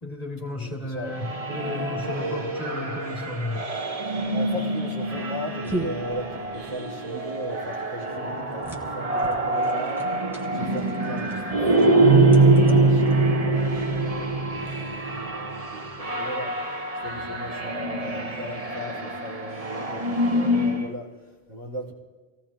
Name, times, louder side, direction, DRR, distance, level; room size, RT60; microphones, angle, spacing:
voice 1, 0.0-3.7, left 1 dB, 35° left, -1 dB, 2.7 m, -34 dB
voice 2, 0.5-1.1 4.3-10.1 10.5-16.5 17.0-21.9, equal, 50° right, -7 dB, 3.3 m, -37 dB
sound 1, 1.1-20.9, right 2 dB, 30° right, 1.2 m, -24 dB
sound 2, 5.6-13.7, right 2 dB, ahead, 2.1 m, -39 dB
25.5 x 17.5 x 2.9 m, 1.3 s
omnidirectional pair, 1.2 m